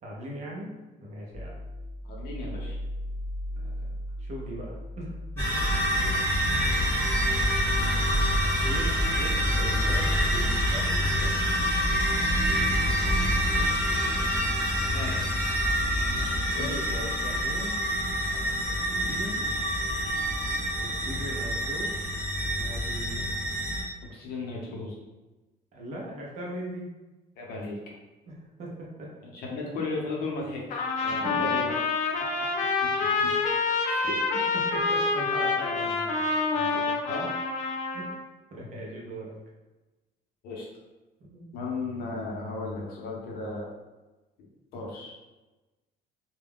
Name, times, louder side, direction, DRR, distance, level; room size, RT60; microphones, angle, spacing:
voice 1, 0.0-1.6 3.6-5.6 8.6-11.4 13.6-14.2 16.1-16.3 16.5-17.9 18.5-19.5 20.8-21.9 22.5-23.3 25.7-26.9 28.3-29.1 31.2-31.5 32.2-32.7 34.3-36.9 37.9-38.1 38.5-39.3 41.2-41.5, right 1 dB, 40° right, -4 dB, 0.6 m, -40 dB
sound 1, 1.3-8.2, equal, 20° right, 1.0 m, -37 dB
voice 2, 2.0-2.8 6.0-6.3 14.9-15.3 16.5-17.1 24.1-25.0 27.4-27.8 29.2-31.7 33.2-33.3 33.8-34.2 37.1-37.3 40.4-40.7 41.5-43.7 44.7-45.1, left 3 dB, 60° left, -3 dB, 0.7 m, -35 dB
sound 2, 5.4-23.8, equal, 15° left, 1.0 m, -26 dB
Trumpet, 30.7-38.2, left 4 dB, 45° left, 0.4 m, -27 dB
2.3 x 2.2 x 3.4 m, 1.1 s
cardioid pair, 175°, 18 cm